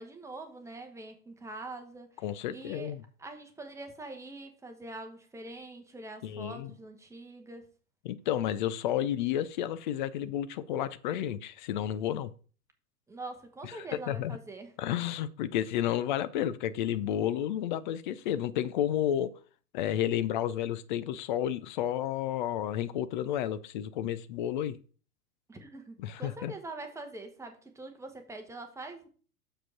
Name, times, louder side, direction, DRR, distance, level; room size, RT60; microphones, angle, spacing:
voice 1, 0.0-2.1 2.5-2.9 3.2-7.7 13.1-14.7 25.5-29.1, right 2 dB, 5° right, 4 dB, 1.2 m, -44 dB
voice 2, 2.2-3.0 6.2-6.7 8.0-12.3 13.6-13.8 14.1-14.4 14.8-19.3 19.7-24.8 26.0-26.5, left 11 dB, 35° left, 15 dB, 0.5 m, -31 dB
6.6 x 4.9 x 5.9 m, 0.41 s
figure-of-eight pair, 95°, 46 cm